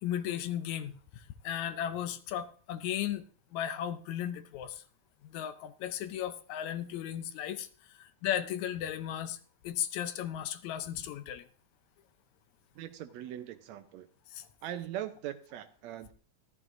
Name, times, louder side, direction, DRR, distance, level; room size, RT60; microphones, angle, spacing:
voice 1, 0.0-3.2 3.5-4.8 5.2-7.7 8.0-9.4 9.6-11.5 14.3-14.5, left 10 dB, 80° left, 2.0 m, -35 dB
voice 2, 12.8-14.1 14.6-16.1, right 11 dB, 75° right, 1.8 m, -40 dB
13.5 x 13.5 x 2.6 m
omnidirectional pair, 3.4 m